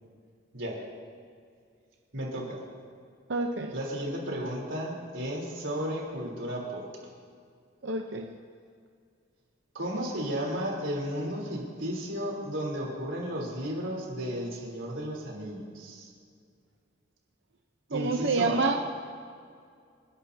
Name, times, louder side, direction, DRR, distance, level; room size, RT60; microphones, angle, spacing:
voice 1, 2.1-2.6 3.7-6.8 9.7-16.1 17.9-18.6, equal, 75° right, -2 dB, 3.6 m, -34 dB
voice 2, 3.3-3.7 7.8-8.3 17.9-18.8, right 3 dB, 60° right, 3 dB, 0.8 m, -27 dB
29.0 x 12.0 x 2.8 m, 2.2 s
head